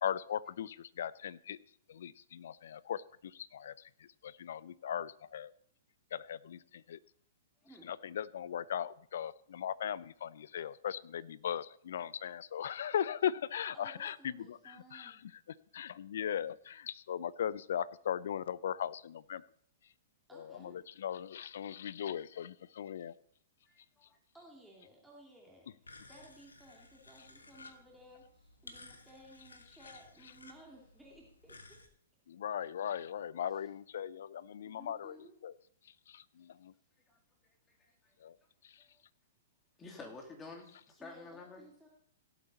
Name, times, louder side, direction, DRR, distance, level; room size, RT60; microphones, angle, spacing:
voice 1, 0.0-1.6 1.9-3.0 3.5-3.7 4.2-5.5 6.1-6.6 6.9-7.0 8.1-14.6 14.9-15.1 15.7-19.4 20.4-23.1 32.3-35.1 35.4-35.5 36.6-36.7 38.2-38.3, left 9 dB, 65° left, 20 dB, 0.5 m, -38 dB
voice 2, 13.7-15.2 20.3-20.8 24.3-31.8 33.4-33.7 34.6-35.4 41.0-41.9, right 1 dB, 5° right, -2 dB, 2.6 m, -58 dB
voice 3, 23.7-24.2 37.1-37.2 37.8-38.1 38.8-39.0 39.8-41.6, left 3 dB, 20° left, 2 dB, 3.0 m, -51 dB
sound 1, 25.8-31.9, left 3 dB, 85° left, 1.5 m, -56 dB
17.5 x 8.1 x 4.2 m, 0.64 s
figure-of-eight pair, 110°, 0 cm